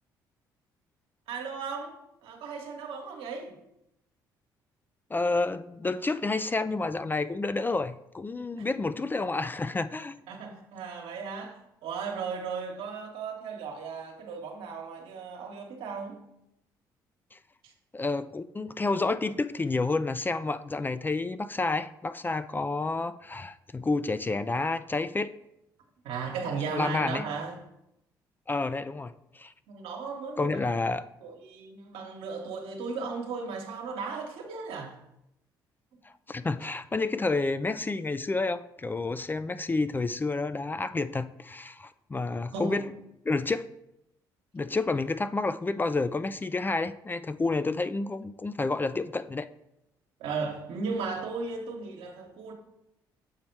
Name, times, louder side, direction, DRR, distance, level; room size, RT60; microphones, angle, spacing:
voice 1, 1.3-3.5 8.6-8.7 10.3-16.2 17.6-17.7 26.0-27.6 29.7-30.7 31.2-35.0 35.9-36.0 42.5-42.9 50.2-52.5, right 4 dB, 75° right, 1.2 m, -36 dB
voice 2, 5.1-10.2 17.3-17.4 17.9-25.3 26.7-27.2 28.5-29.5 30.4-31.1 36.3-42.8 43.3-43.7 44.5-49.5, left 3 dB, 20° left, 0.4 m, -29 dB
7.3 x 4.2 x 4.5 m
supercardioid pair, 65°, 10 cm